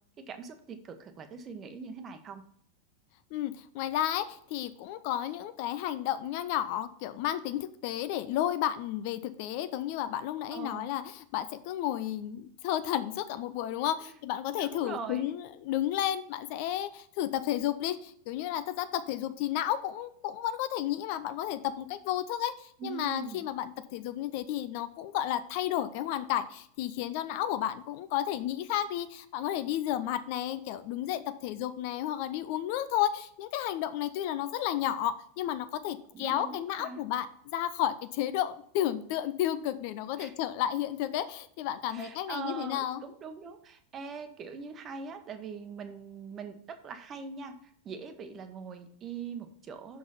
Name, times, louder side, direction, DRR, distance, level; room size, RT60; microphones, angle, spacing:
voice 1, 0.2-2.4 10.5-10.9 14.1-14.2 14.6-15.3 22.8-23.5 36.1-37.0 40.2-40.3 41.9-47.5 47.8-50.0, right 5 dB, 25° right, 8 dB, 1.0 m, -42 dB
voice 2, 3.3-37.3 37.5-43.0, left 12 dB, 45° left, 13 dB, 0.5 m, -32 dB
6.4 x 6.2 x 5.6 m, 0.65 s
figure-of-eight pair, 90°, 0 cm